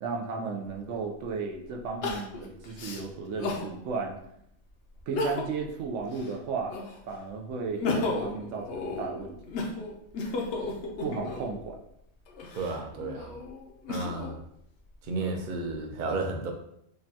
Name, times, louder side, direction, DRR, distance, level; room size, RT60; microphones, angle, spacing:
voice 1, 0.0-4.2 5.1-6.8 7.1-9.4 11.0-11.8, right 4 dB, 85° right, 1 dB, 1.0 m, -34 dB
Crying sobbing, 0.7-0.8 2.0-3.7 4.2-4.3 5.0-5.7 6.1-7.1 7.6-11.6 12.3-14.3 14.9-15.7, left 3 dB, 70° left, 0.9 m, -34 dB
voice 2, 12.5-13.4 13.9-14.4 15.0-16.5, right 3 dB, 50° right, 3 dB, 0.6 m, -32 dB
5.1 x 2.2 x 2.8 m, 0.75 s
omnidirectional pair, 1.2 m